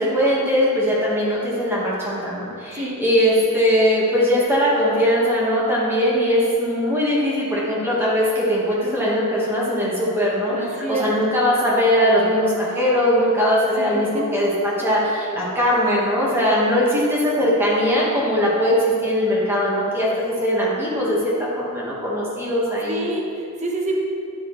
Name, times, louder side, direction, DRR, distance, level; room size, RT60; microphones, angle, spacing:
voice 1, 0.0-23.0, equal, 10° right, -6 dB, 1.4 m, -20 dB
voice 2, 10.5-11.1 13.8-14.2 22.9-23.9, right 2 dB, 30° right, -1 dB, 1.0 m, -28 dB
10.5 x 6.1 x 3.1 m, 2.5 s
head